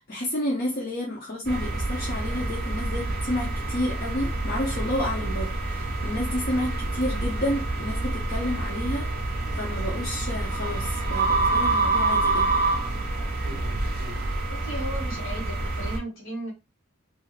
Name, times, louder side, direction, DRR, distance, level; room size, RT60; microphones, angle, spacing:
voice 1, 0.0-9.1 9.5-12.7, left 1 dB, 45° left, 0.7 m, -30 dB
sound 1, 1.5-16.0, right 2 dB, 45° right, 0.6 m, -27 dB
voice 2, 14.5-16.5, right 1 dB, 70° left, 1.4 m, -35 dB
2.6 x 2.4 x 3.2 m
head